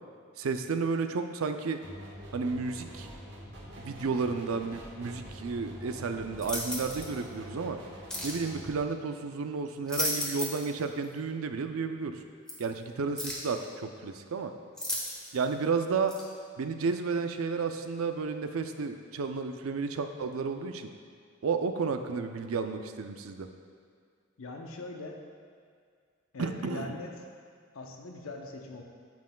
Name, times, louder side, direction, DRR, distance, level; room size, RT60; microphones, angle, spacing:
voice 1, 0.4-1.8 2.3-3.1 3.8-7.8 8.2-12.2 12.6-14.5 15.3-16.2 16.6-20.9 21.4-23.5 26.4-26.9, right 4 dB, 90° right, 7 dB, 0.5 m, -32 dB
sound 1, 1.8-8.7, equal, 60° right, 1.4 m, -45 dB
sound 2, 6.4-7.1 8.1-8.4 9.7-10.7 11.0-11.1 12.5-12.6 13.2-13.5 14.8-15.4 16.1-16.2, left 1 dB, 5° left, 1.1 m, -34 dB
voice 2, 24.4-25.2 26.3-27.1 27.7-28.8, left 3 dB, 80° left, 2 dB, 0.8 m, -41 dB
9.2 x 7.4 x 2.3 m, 2.1 s
head